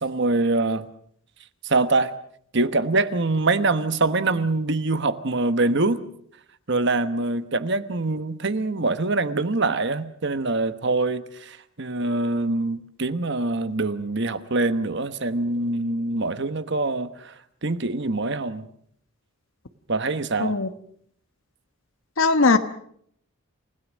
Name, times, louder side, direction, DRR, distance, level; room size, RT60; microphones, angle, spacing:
voice 1, 0.0-0.9 1.6-2.1 2.5-6.1 6.7-17.3 17.6-18.7 19.9-20.6, right 2 dB, 55° right, 1.2 m, -24 dB
voice 2, 22.2-22.6, left 3 dB, 70° left, 1.2 m, -19 dB
28.5 x 17.0 x 6.3 m
head